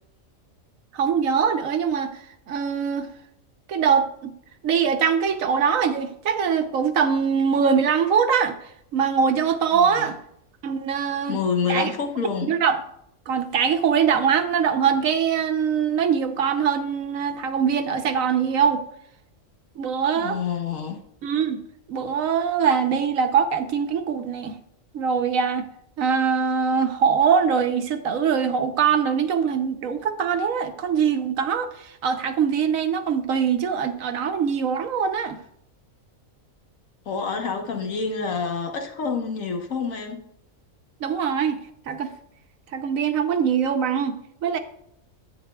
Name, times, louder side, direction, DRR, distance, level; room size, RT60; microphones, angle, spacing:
voice 1, 0.9-3.1 3.7-4.3 4.6-8.6 8.9-10.2 10.6-11.4 11.7-11.9 12.4-12.8 13.3-18.8 19.8-20.4 21.2-21.6 21.9-24.6 24.9-25.7 26.0-35.4 41.0-42.1 42.7-44.6, right 7 dB, 75° right, 8 dB, 1.2 m, -22 dB
voice 2, 9.7-10.1 11.3-12.6 20.1-21.0 37.0-40.2, left 5 dB, 75° left, 4 dB, 1.5 m, -28 dB
10.0 x 8.8 x 2.3 m, 0.71 s
omnidirectional pair, 1.4 m